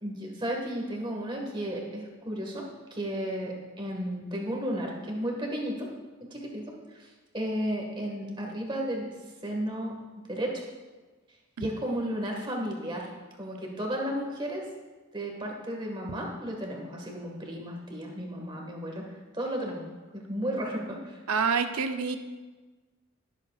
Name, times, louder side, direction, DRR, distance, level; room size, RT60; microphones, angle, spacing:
voice 1, 0.0-5.9 6.3-6.6 6.9-9.1 9.4-9.9 10.3-10.6 11.6-13.1 13.4-14.7 15.1-19.8 20.1-21.2, equal, 20° right, 0 dB, 1.6 m, -33 dB
voice 2, 21.3-22.2, right 5 dB, 85° right, 7 dB, 0.7 m, -27 dB
20.0 x 7.6 x 2.4 m, 1.3 s
head